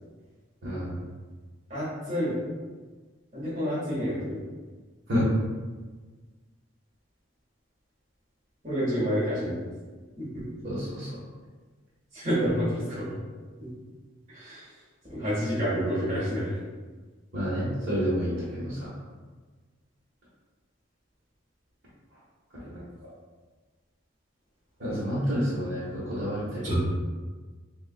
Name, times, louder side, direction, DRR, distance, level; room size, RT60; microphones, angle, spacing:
voice 1, 0.6-0.9 5.1-5.2 10.6-11.2 17.3-18.9 24.8-26.8, equal, 60° right, -10 dB, 1.2 m, -29 dB
voice 2, 1.7-2.4 3.3-4.4 8.6-9.5 10.2-10.4 12.1-13.1 13.6-13.7 14.3-14.7 15.1-16.5 26.6-26.8, equal, 40° right, -10 dB, 1.3 m, -28 dB
6.3 x 2.4 x 2.2 m, 1.4 s
head